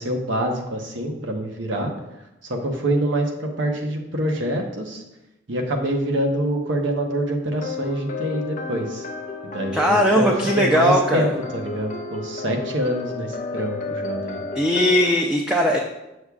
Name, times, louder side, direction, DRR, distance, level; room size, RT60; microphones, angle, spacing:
voice 1, 0.0-1.9 2.4-5.0 5.5-9.0 9.4-14.4, right 1 dB, 80° right, 2 dB, 1.0 m, -25 dB
sound 1, 7.6-15.2, left 4 dB, 40° left, 0.7 m, -32 dB
voice 2, 9.7-11.3 14.5-15.8, equal, 5° right, 0 dB, 0.4 m, -19 dB
8.1 x 6.4 x 2.4 m, 0.96 s
head